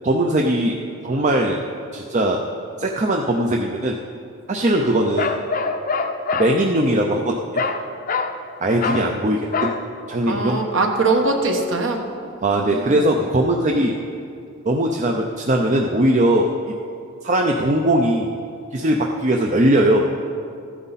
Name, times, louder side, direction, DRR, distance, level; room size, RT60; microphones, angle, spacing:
voice 1, 0.0-0.8 1.0-1.6 1.9-2.5 2.8-4.0 4.5-5.3 6.3-7.6 8.6-9.7 10.1-10.6 12.4-13.9 14.7-16.7 17.2-18.3 18.7-20.1, right 1 dB, 35° right, 1 dB, 0.5 m, -20 dB
Bark, 5.2-6.5 7.6-8.4 8.8-9.1 9.5-9.8, left 4 dB, 40° left, 0.6 m, -24 dB
voice 2, 10.3-13.1, right 3 dB, 60° right, 3 dB, 1.2 m, -22 dB
14.0 x 9.4 x 4.1 m, 2.5 s
head